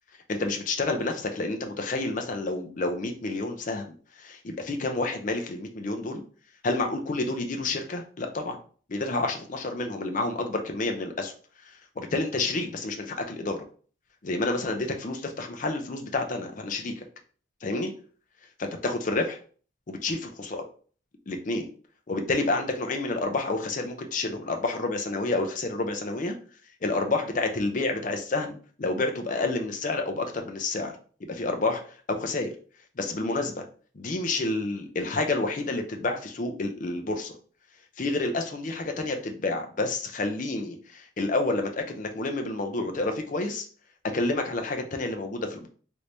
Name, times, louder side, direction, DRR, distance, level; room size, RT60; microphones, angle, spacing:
voice 1, 0.3-6.2 6.6-8.6 8.9-11.3 11.6-13.7 14.2-17.0 17.6-17.9 18.6-19.4 19.9-20.6 21.3-21.7 22.1-26.4 26.8-31.0 31.2-32.5 33.0-33.7 33.9-37.4 38.0-43.7 44.1-45.7, left 2 dB, 40° left, 4 dB, 0.5 m, -29 dB
3.2 x 3.1 x 2.6 m, 0.42 s
head